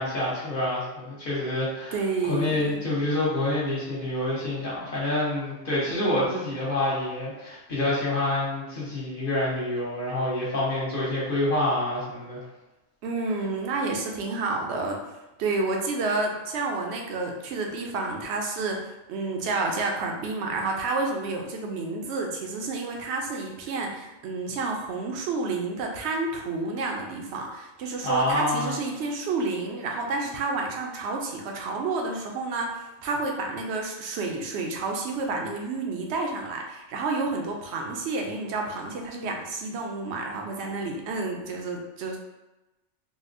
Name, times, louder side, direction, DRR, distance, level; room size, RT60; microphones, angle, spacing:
voice 1, 0.0-2.0 2.3-12.4 28.0-28.8, left 1 dB, 45° left, -7 dB, 1.1 m, -27 dB
voice 2, 1.9-2.8 13.0-42.2, right 3 dB, 65° right, 1 dB, 0.8 m, -30 dB
4.0 x 2.1 x 2.5 m, 1.0 s
omnidirectional pair, 1.4 m